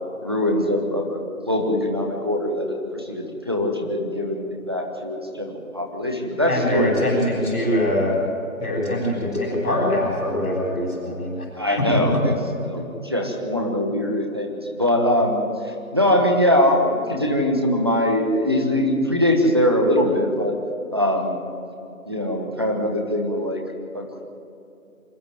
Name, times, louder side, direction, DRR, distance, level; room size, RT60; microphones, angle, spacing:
voice 1, 0.2-1.2 1.5-6.9 11.6-12.3 12.6-20.5 20.9-21.4 22.1-23.6 23.9-24.2, left 1 dB, 15° right, 1 dB, 1.4 m, -22 dB
voice 2, 6.5-8.1 8.6-11.4 11.9-12.2, left 1 dB, 5° left, -14 dB, 2.3 m, -23 dB
25.5 x 12.0 x 9.4 m, 2.7 s
figure-of-eight pair, 175°, 43 cm